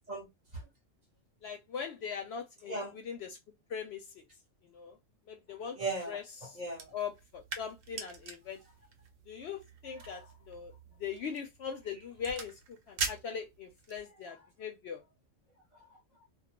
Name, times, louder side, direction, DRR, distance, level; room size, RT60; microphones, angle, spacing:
voice 1, 1.4-3.3 3.7-4.0 4.7-4.9 5.3-5.8 6.1-6.2 6.9-8.6 9.3-10.2 10.5-10.7 11.0-12.5 12.9-15.0, left 7 dB, 65° left, 0.7 m, -40 dB
voice 2, 2.6-3.0 5.7-6.9 10.0-10.3 15.7-16.0, right 2 dB, 40° right, 0.8 m, -39 dB
sound 1, 6.7-14.1, right 5 dB, 85° right, 1.0 m, -43 dB
2.2 x 2.2 x 2.8 m
omnidirectional pair, 1.3 m